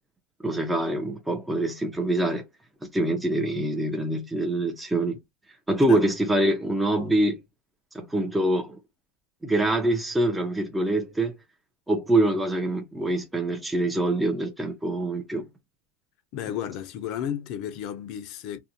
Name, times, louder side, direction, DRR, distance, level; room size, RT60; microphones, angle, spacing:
voice 1, 0.4-2.4 2.8-5.2 5.7-7.4 7.9-8.8 9.4-11.3 11.9-15.5, right 1 dB, 10° right, 0.5 m, -25 dB
voice 2, 16.3-18.6, left 9 dB, 50° left, 0.5 m, -33 dB
2.5 x 2.1 x 2.6 m
supercardioid pair, 130°, 0 cm